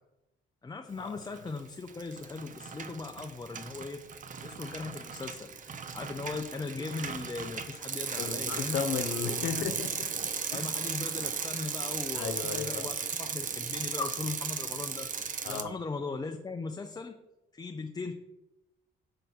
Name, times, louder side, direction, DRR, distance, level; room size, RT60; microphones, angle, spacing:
voice 1, 0.6-4.0 4.4-8.8 9.2-9.4 10.5-15.1 15.5-17.2 17.5-18.1, left 4 dB, 20° left, 4 dB, 0.5 m, -38 dB
Bicycle, 1.2-1.6 1.9-15.6, right 6 dB, 40° right, 0.6 m, -36 dB
voice 2, 8.2-10.1 10.5-10.7 12.1-12.9 15.4-15.7, left 7 dB, 85° left, 7 dB, 0.8 m, -34 dB
5.6 x 3.9 x 6.0 m, 0.95 s
cardioid pair, 90°, 20 cm